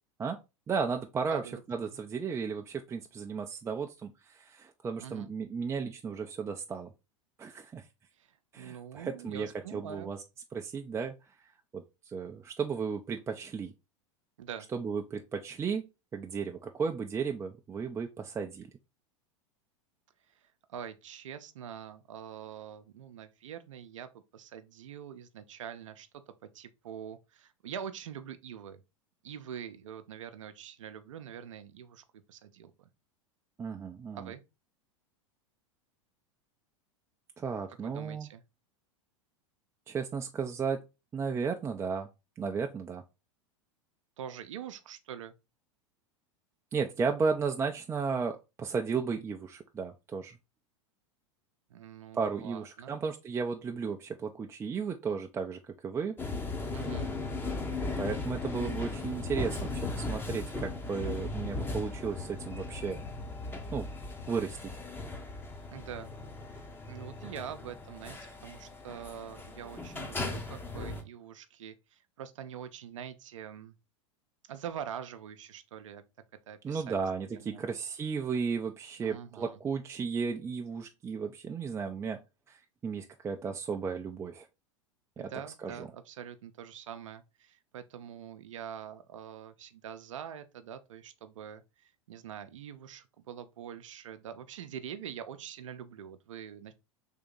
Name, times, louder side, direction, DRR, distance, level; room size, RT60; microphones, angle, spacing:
voice 1, 0.7-1.4 1.7-6.9 7.4-7.8 8.5-10.2 10.5-11.1 11.7-13.7 14.7-15.8 16.1-18.7 33.6-34.3 37.4-38.3 39.9-40.8 41.1-42.1 42.4-43.0 46.7-50.4 52.1-56.2 58.0-63.0 63.7-63.9 64.3-64.7 76.6-82.2 82.5-84.5 85.2-85.3 85.6-85.8, right 5 dB, 15° right, 0.4 m, -34 dB
voice 2, 1.3-1.6 1.9-2.0 5.0-5.3 8.2-10.1 14.4-14.7 20.3-28.8 29.2-32.9 34.1-34.4 37.8-38.4 44.2-45.3 51.7-53.0 56.7-57.1 65.7-66.1 66.5-73.8 74.5-76.0 76.5-77.6 79.0-79.5 85.2-96.7, right 9 dB, 75° right, 0.6 m, -44 dB
sound 1, 56.2-71.0, left 3 dB, 15° left, 0.7 m, -37 dB
3.6 x 2.8 x 3.7 m
hypercardioid pair, 90°, 17 cm